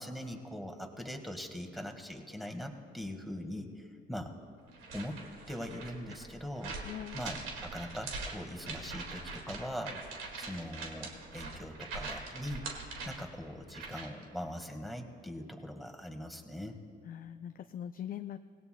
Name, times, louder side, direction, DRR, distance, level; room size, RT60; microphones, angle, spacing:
voice 1, 0.0-4.3 4.9-5.2 5.5-6.8 7.1-10.0 10.4-12.6 13.0-16.8, equal, ahead, 3 dB, 1.7 m, -41 dB
sound 1, 4.7-14.2, right 3 dB, 85° right, 2.0 m, -43 dB
voice 2, 6.8-7.2 17.1-18.4, left 10 dB, 45° left, 9 dB, 0.4 m, -41 dB
25.5 x 18.0 x 2.2 m, 2.5 s
cardioid pair, 90°, 20 cm